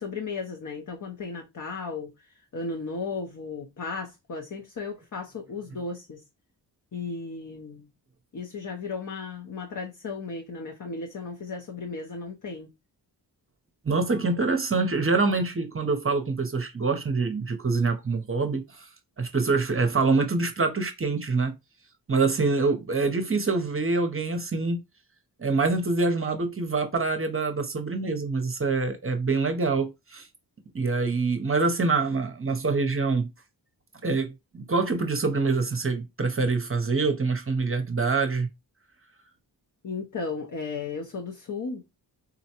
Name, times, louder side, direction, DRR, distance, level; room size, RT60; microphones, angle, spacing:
voice 1, 0.0-2.3 2.5-6.2 6.9-7.9 8.3-12.7 39.8-41.8, left 4 dB, 45° left, 0.7 m, -35 dB
voice 2, 13.8-18.9 19.2-21.5 22.1-24.8 25.4-30.3 30.7-33.3 34.0-38.5, right 3 dB, 30° right, 0.7 m, -25 dB
3.9 x 2.1 x 2.8 m
cardioid pair, 55°, 43 cm